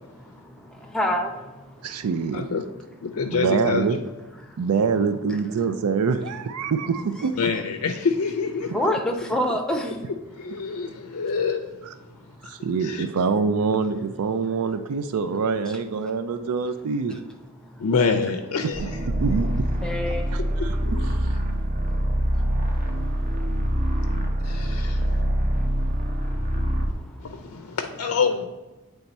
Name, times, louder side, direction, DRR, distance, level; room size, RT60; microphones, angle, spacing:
voice 1, 0.1-2.1 4.4-4.6 6.6-6.7 8.7-10.0 10.6-11.2 12.1-12.6 16.0-16.1 17.1-17.2 17.5-17.9 19.8-20.8 21.4-27.8, left 1 dB, 5° left, 2 dB, 0.6 m, -32 dB
voice 2, 1.8-2.4 3.3-4.0 4.6-7.3 12.5-17.2 19.2-19.7 20.3-20.8 21.2-21.4, right 5 dB, 85° right, 10 dB, 0.4 m, -25 dB
voice 3, 2.3-2.6 3.0-4.0 5.0-5.1 7.4-8.8 10.3-11.6 12.8-13.0 17.8-19.0 20.8-21.1 24.4-25.2 27.2-28.5, left 5 dB, 80° left, 5 dB, 0.5 m, -26 dB
sound 1, 18.7-27.0, equal, 35° right, 0.8 m, -24 dB
8.0 x 3.4 x 4.1 m, 1.1 s
head